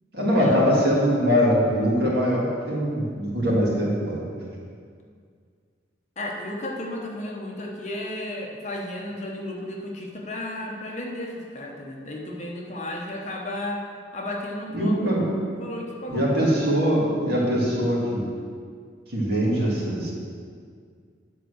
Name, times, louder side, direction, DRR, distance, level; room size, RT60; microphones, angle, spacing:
voice 1, 0.1-4.2 14.7-15.4 16.1-18.2 19.1-20.1, equal, 60° right, -5 dB, 2.2 m, -22 dB
voice 2, 6.2-13.8 14.1-16.2, left 1 dB, 40° left, 0 dB, 1.0 m, -33 dB
9.8 x 4.6 x 6.4 m, 2.1 s
head